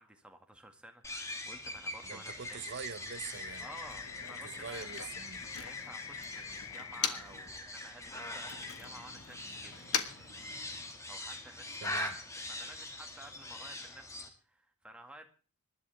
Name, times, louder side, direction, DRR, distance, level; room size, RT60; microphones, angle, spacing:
voice 1, 0.0-2.6 3.6-5.0 5.5-10.5 10.8-12.0 12.5-15.2, right 1 dB, 5° right, 1.9 m, -53 dB
sound 1, 1.0-14.3, left 1 dB, 15° left, 1.9 m, -43 dB
voice 2, 2.0-3.7 4.4-5.5 11.8-12.2, right 6 dB, 50° right, 0.7 m, -44 dB
Motor vehicle (road), 3.1-7.5 7.8-11.1, left 8 dB, 85° left, 1.6 m, -42 dB
sound 2, 3.1-7.1, left 10 dB, 65° left, 0.9 m, -47 dB
26.0 x 12.0 x 3.4 m
head